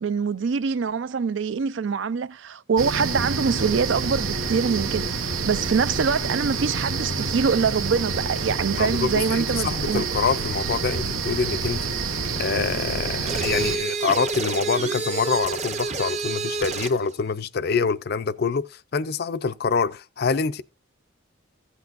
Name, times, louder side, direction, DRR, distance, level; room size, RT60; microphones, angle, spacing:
voice 1, 0.0-10.1, right 5 dB, 65° right, 0.4 m, -24 dB
sound 1, 2.8-13.8, right 4 dB, 85° right, 1.0 m, -28 dB
voice 2, 8.7-11.9 12.3-20.6, left 5 dB, 50° left, 0.5 m, -26 dB
sound 2, 13.3-17.0, right 4 dB, 35° right, 0.7 m, -28 dB
14.5 x 8.2 x 2.5 m
head